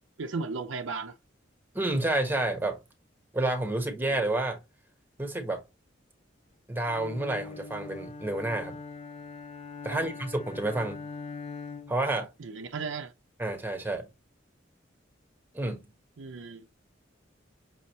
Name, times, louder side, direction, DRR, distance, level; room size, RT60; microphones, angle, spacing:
voice 1, 0.2-1.2 4.0-4.2 9.9-10.1 12.4-13.1 16.2-16.7, right 4 dB, 90° right, 0.5 m, -36 dB
voice 2, 1.7-2.8 3.3-4.6 5.2-5.6 6.7-8.8 9.8-11.1 11.9-12.3 13.4-14.1 15.5-15.9, right 2 dB, 10° right, 1.3 m, -29 dB
Bowed string instrument, 6.8-12.1, left 4 dB, 35° left, 0.5 m, -42 dB
6.2 x 2.7 x 3.0 m
head